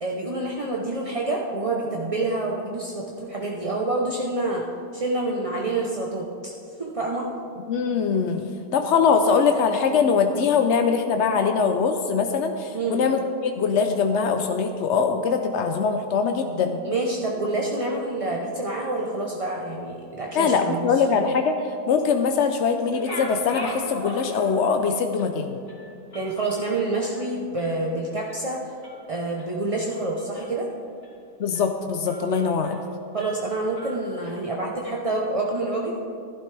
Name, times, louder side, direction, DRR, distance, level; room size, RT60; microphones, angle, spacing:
voice 1, 0.0-4.6 4.9-6.5 6.8-7.3 12.7-13.0 16.8-20.9 26.1-28.6 29.1-30.7 33.1-36.0, right 2 dB, 35° right, -2 dB, 0.5 m, -27 dB
voice 2, 7.7-8.4 8.7-16.8 20.3-25.6 31.4-32.8, left 5 dB, 70° left, 6 dB, 0.6 m, -22 dB
sound 1, 22.8-24.8 25.2-25.3 25.7-27.8 28.2-28.5 28.8-29.5 29.9-30.6 31.0-31.2 31.6-31.7 32.1-32.9 33.2-34.3, left 1 dB, 30° left, 2.9 m, -40 dB
15.0 x 11.5 x 3.3 m, 2.4 s
omnidirectional pair, 1.9 m